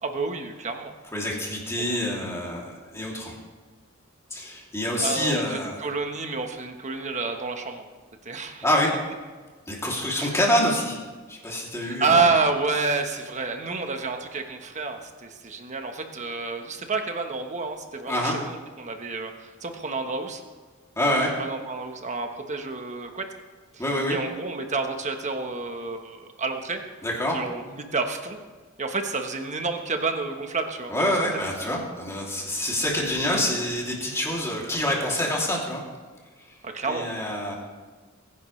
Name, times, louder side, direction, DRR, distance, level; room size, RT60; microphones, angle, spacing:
voice 1, 0.0-0.9 1.8-2.0 5.0-7.9 8.2-8.6 9.9-10.3 11.8-20.4 21.4-23.3 23.7-26.8 27.3-28.4 28.8-31.1 36.6-37.1, right 4 dB, 35° right, 5 dB, 1.3 m, -29 dB
voice 2, 1.1-3.3 4.3-5.8 8.6-8.9 9.7-11.0 11.3-12.2 18.1-18.4 21.0-21.3 23.8-24.2 27.0-27.4 30.9-35.8 36.9-37.5, left 1 dB, 15° left, -3 dB, 2.9 m, -26 dB
22.0 x 10.5 x 3.3 m, 1.4 s
head